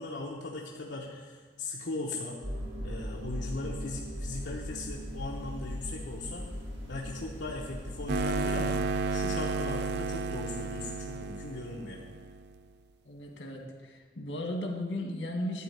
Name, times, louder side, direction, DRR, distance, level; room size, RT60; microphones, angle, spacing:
voice 1, 0.0-2.4 2.8-6.4 6.9-8.8 9.1-12.0, left 2 dB, 70° left, -3 dB, 0.9 m, -38 dB
sound 1, 2.4-8.1, equal, 85° right, 1.7 m, -39 dB
sound 2, 8.1-12.5, right 3 dB, 60° right, 0.4 m, -32 dB
voice 2, 13.0-15.6, left 1 dB, 85° left, 2 dB, 1.7 m, -36 dB
11.5 x 4.2 x 8.0 m, 1.5 s
head